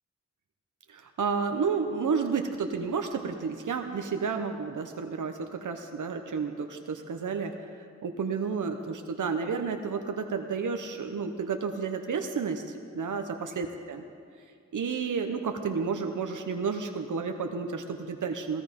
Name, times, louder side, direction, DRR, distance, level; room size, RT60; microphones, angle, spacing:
voice 1, 0.9-14.0 14.7-18.6, right 5 dB, 85° right, 5 dB, 0.9 m, -31 dB
16.5 x 16.0 x 5.2 m, 2.2 s
wide cardioid pair, 70°, 30 cm